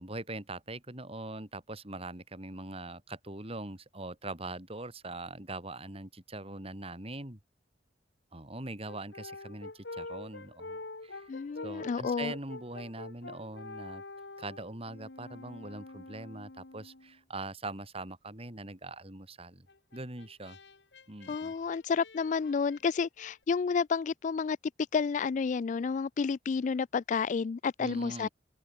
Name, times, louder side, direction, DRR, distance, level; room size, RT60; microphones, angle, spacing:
voice 1, 0.0-7.4 8.3-11.3 11.6-14.0 14.4-19.7 19.9-20.6 21.1-21.5 27.8-28.3, right 2 dB, 35° right, 3.8 m, -42 dB
Brass instrument, 8.8-17.2 19.7-23.3, left 3 dB, 75° left, 2.1 m, -46 dB
voice 2, 11.3-12.3 21.3-24.6 24.9-28.3, left 5 dB, 45° left, 0.3 m, -30 dB
open air
head